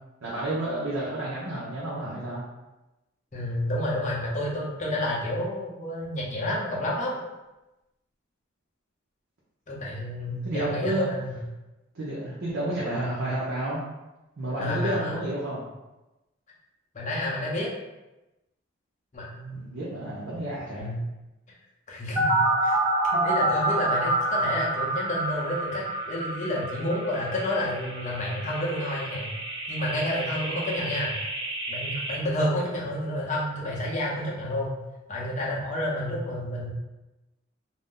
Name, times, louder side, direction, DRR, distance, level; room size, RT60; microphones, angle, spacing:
voice 1, 0.2-2.4 10.3-11.1 11.9-13.8 14.4-15.7 19.5-20.9, right 1 dB, 75° right, -7 dB, 0.7 m, -30 dB
voice 2, 3.3-7.2 9.7-11.4 14.6-15.2 16.9-17.7 19.1-19.6 20.8-21.0 21.9-22.8 23.1-29.3 29.7-31.2 31.7-34.7 35.1-36.7, left 1 dB, 35° left, -4 dB, 0.6 m, -30 dB
sound 1, 22.2-32.1, right 2 dB, 25° right, 1.0 m, -28 dB
2.5 x 2.1 x 3.6 m, 1.0 s
head